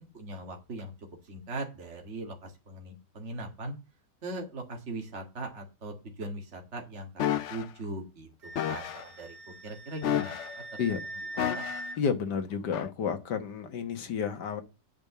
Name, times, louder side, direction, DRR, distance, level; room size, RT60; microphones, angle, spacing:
voice 1, 0.1-3.7 4.2-10.4 11.4-11.6, right 2 dB, 45° right, 2.3 m, -40 dB
sound 1, 7.2-7.7 8.6-9.0 10.0-10.6 11.4-12.0 12.7-12.9, left 10 dB, 60° left, 0.8 m, -31 dB
Wind instrument woodwind instrument, 8.4-12.0, right 2 dB, 60° right, 1.9 m, -42 dB
voice 2, 12.0-14.6, left 6 dB, 85° left, 1.9 m, -31 dB
8.9 x 5.4 x 7.0 m
omnidirectional pair, 1.8 m